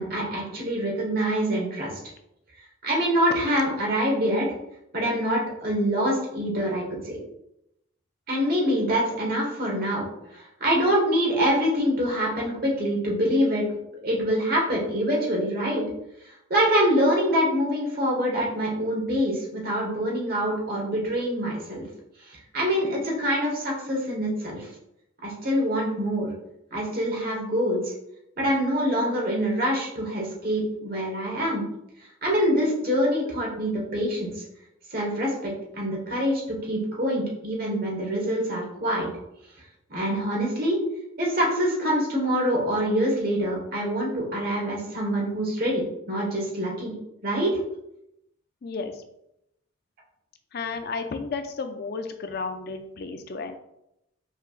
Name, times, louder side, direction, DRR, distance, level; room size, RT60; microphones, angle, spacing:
voice 1, 0.0-2.0 2.8-4.5 4.9-7.2 8.3-10.1 10.3-13.6 14.0-15.9 16.5-21.9 22.3-24.7 25.2-26.3 26.7-27.9 28.4-31.6 32.2-34.4 34.9-39.1 39.9-40.8 41.2-46.9 47.2-47.6, equal, 45° right, -2 dB, 1.3 m, -25 dB
voice 2, 48.6-48.9 50.5-53.6, left 4 dB, 50° left, 7 dB, 0.4 m, -32 dB
5.5 x 3.2 x 2.4 m, 0.82 s
head